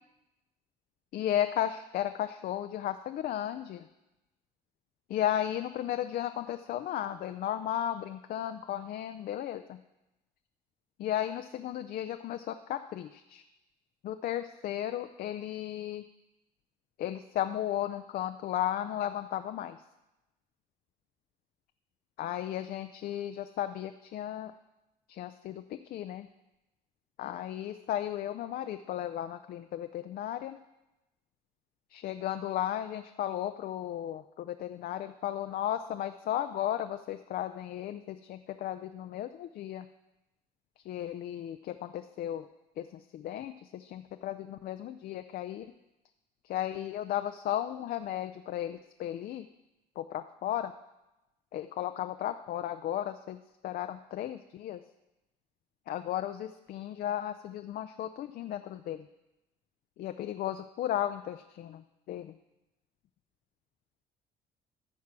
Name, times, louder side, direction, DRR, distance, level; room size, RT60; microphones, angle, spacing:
voice 1, 1.1-3.9 5.1-9.8 11.0-13.4 14.0-16.0 17.0-19.8 22.2-24.5 25.1-26.3 27.2-30.6 31.9-39.8 40.9-42.5 42.8-42.9 43.1-45.7 46.5-49.5 50.0-50.7 51.5-53.4 53.6-54.8 55.9-59.1 60.0-62.3, left 11 dB, 60° left, 9 dB, 0.5 m, -35 dB
14.0 x 4.7 x 6.0 m, 0.97 s
cardioid pair, 110°, 17 cm